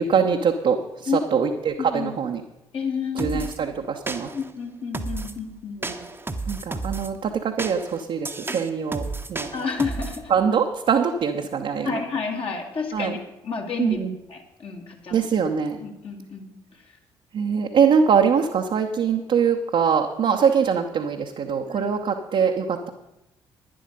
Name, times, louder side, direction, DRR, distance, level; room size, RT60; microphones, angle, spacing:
voice 1, 0.0-2.4 3.2-4.3 5.8-5.9 6.5-9.5 10.3-12.0 12.9-13.1 13.8-14.2 15.1-15.8 17.3-22.9, right 6 dB, 45° right, 1 dB, 0.9 m, -23 dB
voice 2, 1.8-2.1 2.7-3.3 4.3-5.8 9.5-10.3 11.8-14.0 14.3-15.2 15.8-16.5 20.2-20.4 21.7-21.9, left 5 dB, 45° left, 1 dB, 1.9 m, -30 dB
sound 1, 3.2-3.6 4.1-4.5 4.9-5.4 5.8-7.1 7.6-10.2, right 3 dB, 15° right, 1.0 m, -32 dB
11.5 x 10.5 x 5.3 m, 0.89 s
figure-of-eight pair, 45°, 13 cm